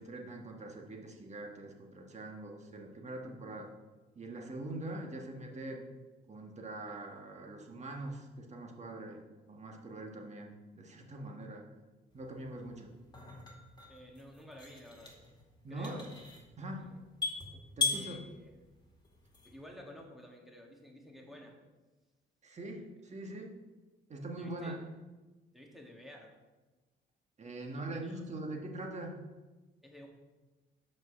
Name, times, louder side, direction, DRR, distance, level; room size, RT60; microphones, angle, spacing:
voice 1, 0.0-3.7 4.1-5.9 6.3-9.2 9.5-11.6 12.1-12.9 15.6-16.1 16.6-16.9 17.8-18.2 22.4-23.5 24.1-24.8 27.4-29.2, right 2 dB, 35° right, 1 dB, 1.5 m, -43 dB
sound 1, 12.2-19.7, left 4 dB, 20° left, 2.2 m, -40 dB
voice 2, 13.9-15.2 15.7-16.1 16.8-17.0 17.9-18.5 19.4-21.6 24.4-24.8 25.5-26.3 27.7-28.3 29.8-30.1, left 1 dB, ahead, 0 dB, 1.7 m, -52 dB
6.1 x 5.2 x 6.3 m, 1.2 s
cardioid pair, 90°, 20 cm